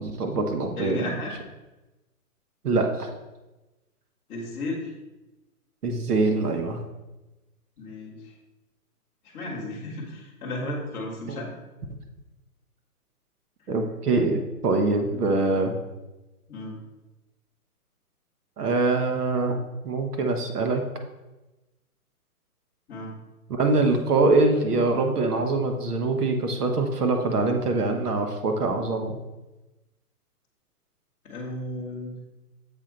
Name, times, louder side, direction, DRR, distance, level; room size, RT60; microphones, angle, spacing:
voice 1, 0.0-1.1 2.6-3.1 5.8-6.8 11.3-11.5 13.7-15.7 18.6-20.8 23.5-29.2, right 3 dB, 90° right, 4 dB, 1.2 m, -24 dB
voice 2, 0.8-1.3 4.3-4.9 7.8-8.3 9.2-11.5 16.5-16.8 22.9-23.1 31.2-32.1, left 2 dB, 10° left, -8 dB, 0.7 m, -34 dB
7.2 x 3.9 x 4.4 m, 1.1 s
hypercardioid pair, 155°, 45 cm